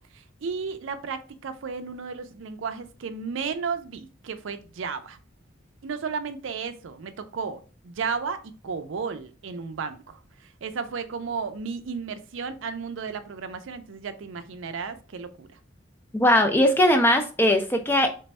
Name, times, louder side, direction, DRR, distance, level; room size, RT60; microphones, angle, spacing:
voice 1, 0.1-5.2 5.8-15.6, right 5 dB, 75° right, 0.4 m, -34 dB
voice 2, 16.1-18.1, left 1 dB, 10° left, 0.4 m, -20 dB
3.3 x 2.2 x 4.0 m
head